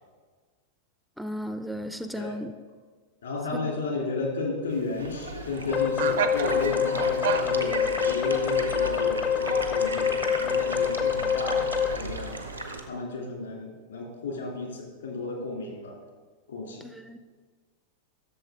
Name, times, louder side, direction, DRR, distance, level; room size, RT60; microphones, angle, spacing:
voice 1, 1.2-2.5 3.6-3.7 16.8-17.2, equal, ahead, 9 dB, 0.4 m, -35 dB
voice 2, 3.2-12.4 12.9-15.9 16.5-16.9, left 3 dB, 70° left, -1 dB, 2.6 m, -33 dB
sound 1, 4.7-12.9, right 8 dB, 60° right, 0.5 m, -37 dB
sound 2, 4.9-12.8, right 2 dB, 90° right, 0.8 m, -36 dB
sound 3, 5.7-12.0, left 7 dB, 35° left, 0.6 m, -26 dB
12.0 x 6.8 x 3.6 m, 1.4 s
figure-of-eight pair, 90°, 0 cm